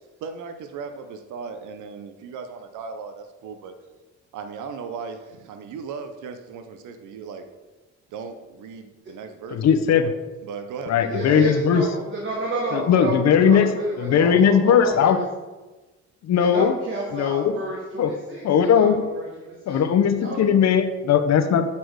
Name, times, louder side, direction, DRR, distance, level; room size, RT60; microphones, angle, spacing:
voice 1, 0.2-3.8 4.3-7.4 8.1-9.6 10.0-10.1 10.4-11.2, right 5 dB, 80° right, 7 dB, 0.8 m, -37 dB
voice 2, 9.5-10.1 10.9-11.8 12.7-13.7 14.0-15.2 16.2-16.7 17.1-17.5 18.0-18.1 18.4-19.0 19.7-21.6, left 7 dB, 60° left, 8 dB, 0.8 m, -18 dB
voice 3, 11.0-15.1 16.4-18.4 18.7-18.9 19.1-19.8 20.2-20.6, right 2 dB, 40° right, -3 dB, 1.7 m, -30 dB
8.1 x 4.2 x 4.7 m, 1.2 s
cardioid pair, 90°, 30 cm